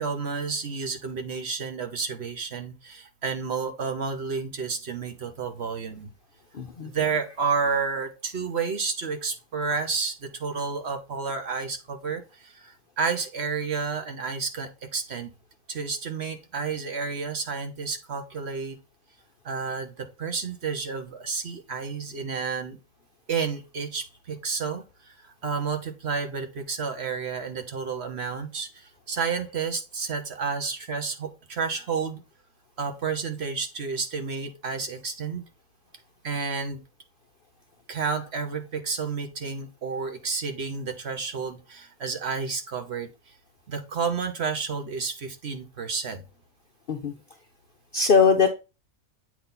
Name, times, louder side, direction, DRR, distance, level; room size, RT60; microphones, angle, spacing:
voice 1, 0.0-6.1 6.8-15.3 15.7-18.8 19.4-22.8 23.3-32.2 32.8-35.4 36.2-36.8 37.9-43.1 43.7-46.2, right 5 dB, 50° right, 6 dB, 1.2 m, -31 dB
voice 2, 47.9-48.5, left 5 dB, 55° left, 5 dB, 0.6 m, -19 dB
8.2 x 4.1 x 3.9 m, 0.28 s
omnidirectional pair, 1.5 m